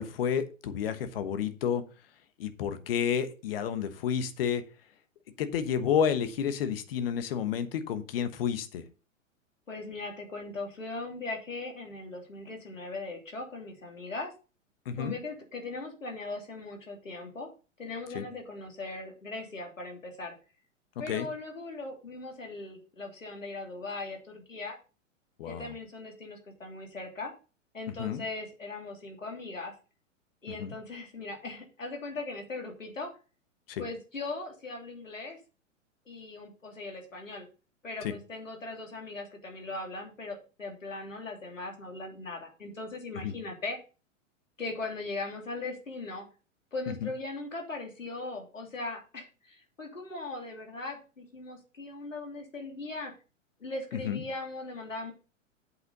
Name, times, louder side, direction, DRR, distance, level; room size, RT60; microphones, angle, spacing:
voice 1, 0.0-1.8 2.4-4.6 5.4-8.8 14.9-15.1 18.1-18.2 21.1-21.3 25.4-25.7 28.0-28.2 30.6-30.7 33.7-33.8 38.0-38.1 43.2-43.3 46.9-47.1 54.0-54.2, left 8 dB, 45° left, 12 dB, 1.2 m, -30 dB
voice 2, 9.7-14.3 14.9-17.5 17.8-20.3 21.0-24.8 25.5-27.3 27.7-29.7 30.4-33.1 33.8-35.4 36.1-37.5 37.8-43.8 44.6-46.3 46.7-53.1 53.6-55.1, left 3 dB, 75° left, 2 dB, 3.1 m, -39 dB
8.2 x 7.9 x 3.8 m, 0.33 s
figure-of-eight pair, 105°, 39 cm